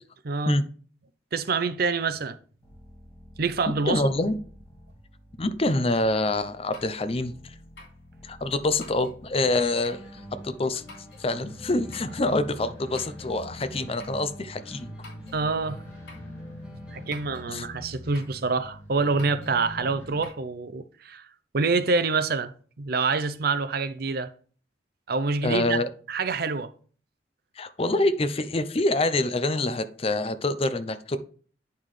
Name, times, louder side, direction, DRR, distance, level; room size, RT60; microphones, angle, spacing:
voice 1, 0.2-0.6 1.3-2.4 3.4-4.0 15.3-15.8 16.9-21.3 21.5-24.3 25.1-25.8 26.1-26.7, right 4 dB, 55° right, 0.6 m, -26 dB
sound 1, 2.6-20.3, left 1 dB, 15° left, 2.3 m, -46 dB
voice 2, 3.9-4.3 5.4-7.5 8.2-14.9 17.5-17.7 25.4-25.9 27.6-31.2, left 2 dB, 35° left, 0.6 m, -26 dB
sound 2, 6.7-7.1 7.8-8.0 8.8-9.2 9.8-10.1 10.9-11.3 11.9-12.2 13.0-13.3 14.0-14.2 15.0-15.4 16.1-16.3 17.1-17.5 18.1-18.4 19.2-19.6 20.2-20.4, left 3 dB, 70° left, 3.2 m, -48 dB
sound 3, 9.4-17.4, right 1 dB, 5° right, 1.8 m, -47 dB
9.1 x 5.6 x 3.3 m
head